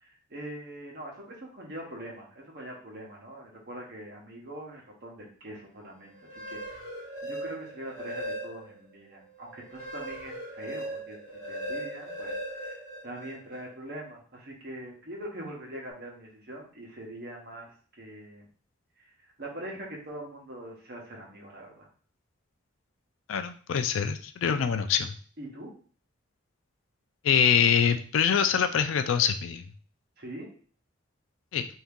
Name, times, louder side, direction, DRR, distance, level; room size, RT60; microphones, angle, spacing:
voice 1, 0.0-6.8 7.2-11.2 11.5-17.7 18.0-18.5 19.2-21.9 25.4-25.7 30.2-30.5, right 1 dB, 50° right, -1 dB, 1.0 m, -43 dB
sound 1, 6.2-8.8 9.3-13.6, right 1 dB, 20° right, 1.6 m, -38 dB
voice 2, 23.3-25.1 27.2-29.6 31.5-31.7, left 7 dB, 75° left, 9 dB, 0.3 m, -24 dB
2.8 x 2.7 x 3.6 m, 0.42 s
head